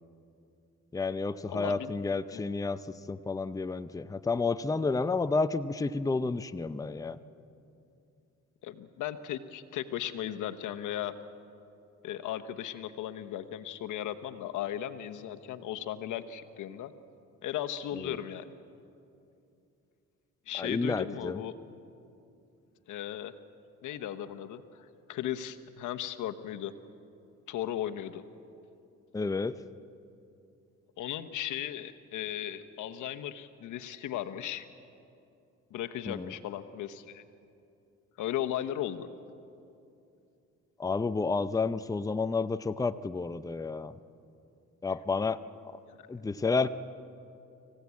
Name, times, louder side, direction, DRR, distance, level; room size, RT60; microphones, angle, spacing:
voice 1, 0.9-2.8 3.1-7.2 17.9-18.2 20.6-21.4 29.1-29.6 36.1-36.3 40.8-43.9 44.8-45.4 46.1-46.7, left 4 dB, 10° left, 12 dB, 0.6 m, -30 dB
voice 2, 1.5-1.9 2.3-2.4 8.6-11.1 12.0-16.9 17.4-18.4 20.5-21.5 22.9-23.3 23.8-26.7 27.5-28.2 31.0-34.7 35.7-37.2 38.2-39.1 45.9-46.0, left 11 dB, 85° left, 8 dB, 1.1 m, -36 dB
25.5 x 16.0 x 8.4 m, 2.7 s
cardioid pair, 90°, 30 cm